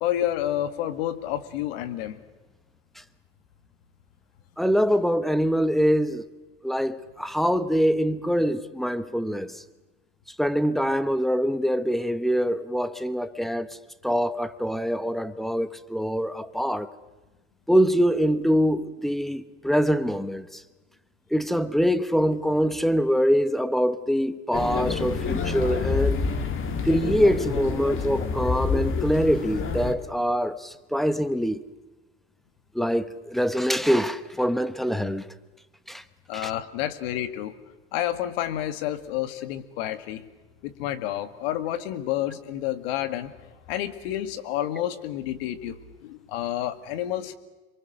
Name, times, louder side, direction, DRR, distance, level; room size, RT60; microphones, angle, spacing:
voice 1, 0.0-2.2 36.3-37.5 37.9-40.3 40.6-43.3 43.7-47.3, left 12 dB, 70° left, 11 dB, 2.0 m, -29 dB
voice 2, 4.6-6.2 6.6-9.6 10.4-13.8 14.0-16.9 17.7-20.6 21.3-26.2 26.8-31.6 32.7-35.3 35.9-36.0 36.3-36.5, equal, ahead, 13 dB, 1.2 m, -24 dB
sound 1, 24.5-29.9, left 5 dB, 40° left, 2.8 m, -27 dB
27.0 x 23.5 x 6.5 m, 1.1 s
hypercardioid pair, 90°, 31 cm